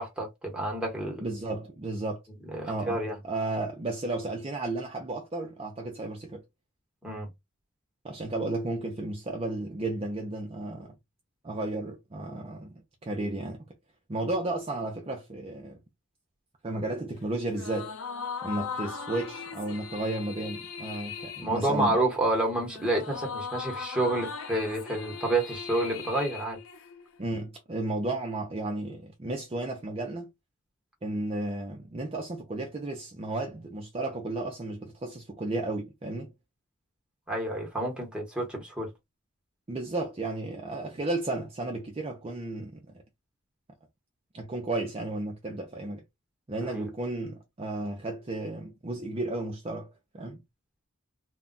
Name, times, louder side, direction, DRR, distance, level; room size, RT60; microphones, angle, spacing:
voice 1, 0.0-1.2 2.5-3.2 7.0-7.3 21.4-26.6 37.3-38.9 46.7-46.8, right 2 dB, 5° right, 1.0 m, -29 dB
voice 2, 1.2-2.2 2.7-6.4 8.0-10.9 11.4-13.7 14.1-15.8 16.6-17.9 18.4-22.0 27.2-30.3 31.0-36.3 39.7-43.0 44.3-46.0 46.5-50.4, right 2 dB, 30° right, 0.5 m, -33 dB
sound 1, 17.5-27.2, left 5 dB, 85° left, 0.7 m, -39 dB
2.2 x 2.2 x 3.8 m
head